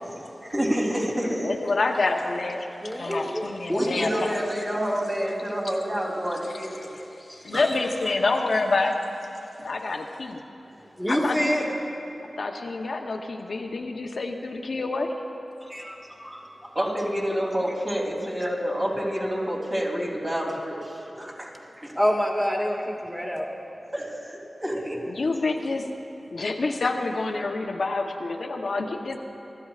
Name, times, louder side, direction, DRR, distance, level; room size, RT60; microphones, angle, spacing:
voice 1, 0.1-1.7 3.7-6.9 16.7-21.9 23.9-25.0, equal, 30° right, -3 dB, 3.2 m, -28 dB
voice 2, 1.4-4.4 6.9-7.0 7.4-9.0 9.6-10.4 11.1-11.5 12.2-15.1 25.1-25.9 26.3-29.2, left 3 dB, 75° left, 2 dB, 0.8 m, -27 dB
voice 3, 2.8-3.5 7.3-7.7 8.2-8.3 11.0-11.7 15.7-15.9 16.2-16.4 22.0-23.5, equal, ahead, -1 dB, 1.9 m, -26 dB
24.0 x 14.0 x 2.4 m, 2.9 s
wide cardioid pair, 65°, 0 cm